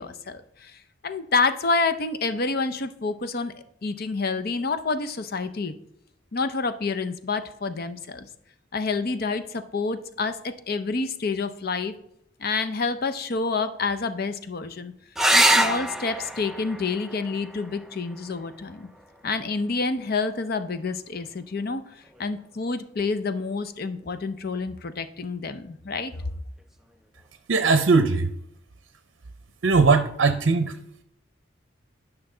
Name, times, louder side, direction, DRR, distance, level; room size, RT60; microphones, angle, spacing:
voice 1, 0.0-3.5 3.8-5.7 6.3-8.3 8.7-11.9 12.4-14.9 15.3-18.9 19.2-21.8 22.2-26.1, left 4 dB, 50° left, 11 dB, 0.6 m, -28 dB
sound 1, 15.1-20.2 22.1-22.7 26.2-26.3 26.6-26.7, right 1 dB, ahead, 0.4 m, -26 dB
voice 2, 27.5-28.3 29.6-30.8, right 4 dB, 70° right, 9 dB, 0.6 m, -19 dB
11.0 x 5.8 x 3.8 m, 0.72 s
head